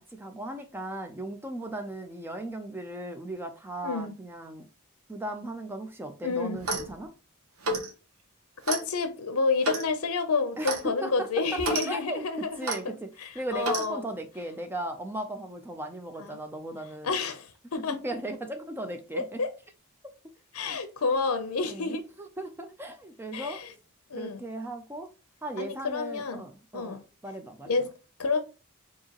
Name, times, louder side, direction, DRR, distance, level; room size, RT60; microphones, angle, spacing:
voice 1, 0.0-4.7 5.1-7.1 10.6-17.1 17.9-19.4 20.6-20.8 21.6-23.6 24.1-25.1 25.4-27.8, right 1 dB, 10° right, 0.4 m, -37 dB
voice 2, 3.8-4.1 6.2-6.6 8.7-14.1 16.2-16.4 17.0-18.0 19.1-19.5 20.5-22.0 23.3-23.7 24.1-24.4 25.6-26.4 26.7-27.0 27.7-27.9 28.2-28.4, left 4 dB, 85° left, 0.7 m, -29 dB
Clock, 6.5-6.9 7.6-7.9 8.6-8.8 9.6-9.9 10.6-10.8 11.6-11.9 12.6-12.8 13.6-13.9, right 2 dB, 75° right, 1.1 m, -30 dB
4.7 x 2.8 x 2.9 m
head